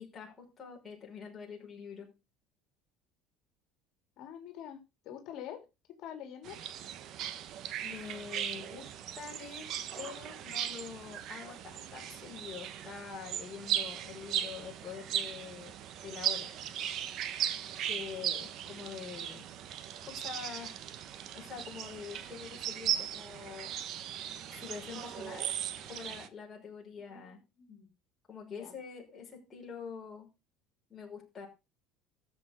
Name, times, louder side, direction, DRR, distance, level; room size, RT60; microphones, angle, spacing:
voice 1, 0.0-2.1 7.8-15.7 16.0-16.5 17.8-19.5 20.1-20.8 21.3-23.7 24.5-25.5 25.9-27.4 28.3-30.3 30.9-31.5, left 6 dB, 20° left, -2 dB, 5.6 m, -45 dB
voice 2, 4.2-4.8 5.0-5.6 6.0-6.6 27.1-27.2 27.6-27.9 28.5-28.7, left 9 dB, 55° left, 6 dB, 3.2 m, -45 dB
sound 1, 6.4-26.3, right 10 dB, 50° right, 1.2 m, -38 dB
14.0 x 7.3 x 5.3 m, 0.27 s
cardioid pair, 145°, 0 cm